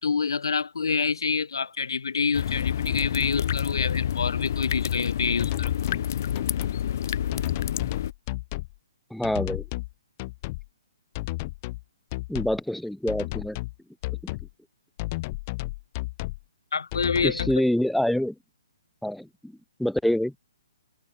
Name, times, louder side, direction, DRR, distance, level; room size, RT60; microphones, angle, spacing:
voice 1, 0.0-5.8 16.7-17.6, left 5 dB, 90° left, 3.3 m, -27 dB
sound 1, 2.3-8.1, left 10 dB, 45° left, 3.9 m, -28 dB
sound 2, 5.4-6.1 6.4-6.8 7.3-8.8 9.2-9.9 10.2-10.7 11.2-11.8 12.1-12.6 13.1-13.8 14.0-14.5 15.0-16.4 16.9-17.6, left 22 dB, 25° left, 4.4 m, -33 dB
voice 2, 9.1-9.6 12.3-13.6 17.2-18.3 19.0-19.3 19.8-20.3, left 1 dB, ahead, 0.5 m, -25 dB
hypercardioid pair, 170°, 2 cm